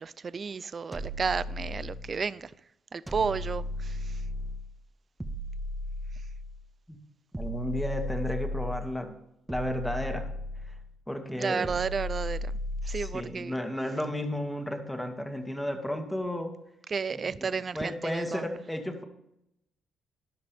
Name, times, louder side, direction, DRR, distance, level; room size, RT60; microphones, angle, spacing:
voice 1, 0.0-2.5 2.9-4.2 11.4-12.5 12.9-13.5 16.9-18.5, right 5 dB, 40° right, 0.4 m, -32 dB
sound 1, 0.9-2.2 3.1-4.7 5.2-6.6 7.3-9.0 9.5-10.9 11.6-13.2, left 1 dB, 15° right, 1.4 m, -35 dB
voice 2, 7.4-9.2 9.5-10.3 10.7-10.8 11.1-11.7 12.8-16.6 17.1-19.0, left 1 dB, 5° left, 2.1 m, -33 dB
13.5 x 11.0 x 3.5 m
cardioid pair, 90°, 0 cm